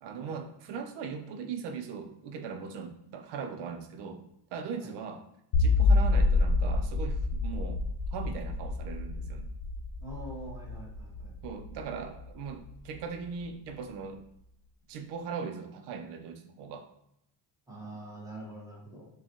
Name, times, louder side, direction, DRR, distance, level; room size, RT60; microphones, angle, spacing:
voice 1, 0.0-4.2 4.5-5.2 5.6-7.8 8.1-9.5 11.4-14.2 14.9-16.9, right 6 dB, 75° right, 6 dB, 0.6 m, -39 dB
sound 1, 5.5-12.7, left 3 dB, 80° left, 0.6 m, -28 dB
voice 2, 10.0-11.3 17.7-19.1, right 1 dB, 10° right, -5 dB, 1.0 m, -44 dB
5.5 x 2.3 x 2.8 m, 0.79 s
cardioid pair, 170°, 41 cm